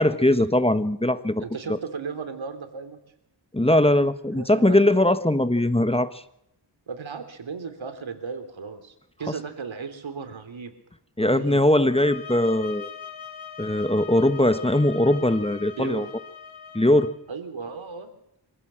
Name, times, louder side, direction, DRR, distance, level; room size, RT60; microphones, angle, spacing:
voice 1, 0.0-1.4 1.7-1.8 3.5-6.2 11.2-12.9 13.6-16.0 16.7-17.1, left 1 dB, 10° left, 11 dB, 1.2 m, -20 dB
voice 2, 1.4-3.0 4.3-4.8 6.9-10.7 11.2-11.6 15.8-16.1 17.3-18.2, right 5 dB, 80° right, 8 dB, 3.3 m, -36 dB
sound 1, 11.8-17.2, left 7 dB, 85° left, 3.7 m, -41 dB
26.0 x 16.0 x 7.5 m, 0.80 s
wide cardioid pair, 65°, 46 cm